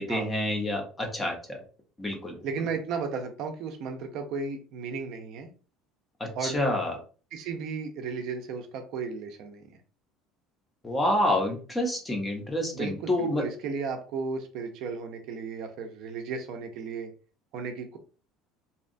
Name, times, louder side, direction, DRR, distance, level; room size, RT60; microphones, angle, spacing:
voice 1, 0.0-1.6 2.0-2.4 6.2-7.0 10.8-13.5, left 1 dB, 10° left, 2 dB, 0.5 m, -28 dB
voice 2, 2.4-5.5 6.3-6.6 7.3-9.6 12.7-17.1 17.5-18.0, right 5 dB, 45° right, 5 dB, 0.4 m, -34 dB
2.7 x 2.2 x 2.5 m, 0.37 s
cardioid pair, 180°, 0 cm